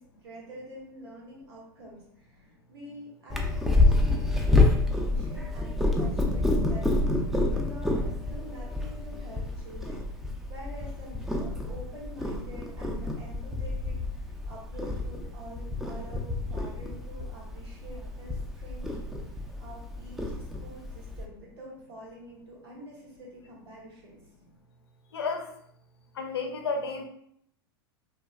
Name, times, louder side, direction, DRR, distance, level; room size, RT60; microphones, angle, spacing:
voice 1, 0.0-18.9 19.6-24.2, equal, 80° right, -5 dB, 1.1 m, -47 dB
Purr, 3.3-21.2, left 2 dB, ahead, 0.3 m, -28 dB
voice 2, 25.1-25.5 26.1-27.1, left 4 dB, 90° left, 4 dB, 0.4 m, -31 dB
2.4 x 2.2 x 2.3 m, 0.71 s
hypercardioid pair, 100°, 13 cm